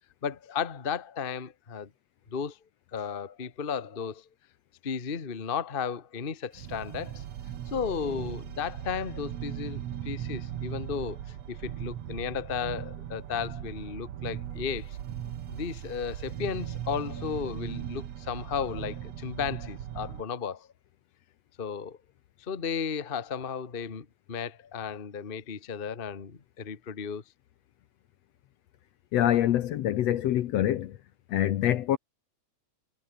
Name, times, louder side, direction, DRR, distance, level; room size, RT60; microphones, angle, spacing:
voice 1, 0.2-1.9 2.3-2.6 2.9-4.3 4.8-7.2 7.7-15.0 15.5-20.7 21.6-22.0 22.4-27.2, left 6 dB, 30° left, 1.1 m, -34 dB
sound 1, 6.5-20.2, right 11 dB, 60° right, 2.3 m, -38 dB
voice 2, 29.1-31.0 31.3-32.0, left 12 dB, 65° left, 1.8 m, -25 dB
omnidirectional pair, 3.6 m